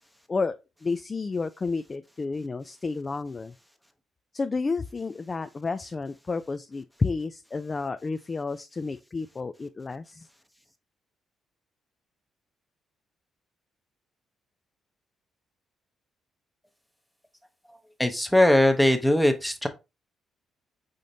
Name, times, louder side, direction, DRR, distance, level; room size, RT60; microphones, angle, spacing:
voice 1, 0.8-3.5 4.3-10.3, left 4 dB, 30° left, 0.3 m, -31 dB
voice 2, 18.0-19.7, left 1 dB, 5° left, 0.8 m, -20 dB
5.0 x 3.9 x 2.7 m
cardioid pair, 90°, 0 cm